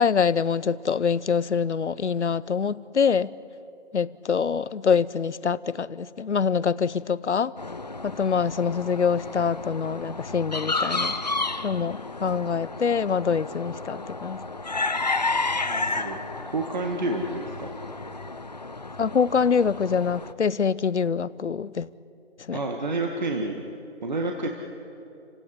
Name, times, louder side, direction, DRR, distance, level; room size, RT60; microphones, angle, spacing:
voice 1, 0.0-3.3 3.9-7.5 8.0-11.1 11.6-14.4 19.0-21.9 22.4-22.6, left 6 dB, 70° left, 19 dB, 0.9 m, -25 dB
sound 1, 7.6-20.3, left 3 dB, 35° left, 0.7 m, -31 dB
voice 2, 15.6-16.2 16.5-17.7 22.5-23.6 24.0-24.5, right 2 dB, 40° right, 2 dB, 1.8 m, -29 dB
30.0 x 17.0 x 10.0 m, 2.8 s
hypercardioid pair, 175°, 35 cm